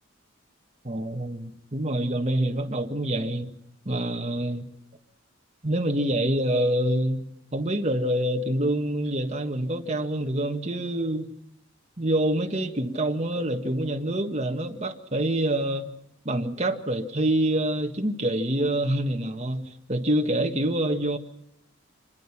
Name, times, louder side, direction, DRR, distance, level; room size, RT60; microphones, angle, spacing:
voice 1, 0.8-3.5 3.8-4.7 5.6-7.2 7.5-11.2 12.0-15.9 16.2-21.2, right 1 dB, 35° right, 1.7 m, -26 dB
25.0 x 21.5 x 6.0 m
head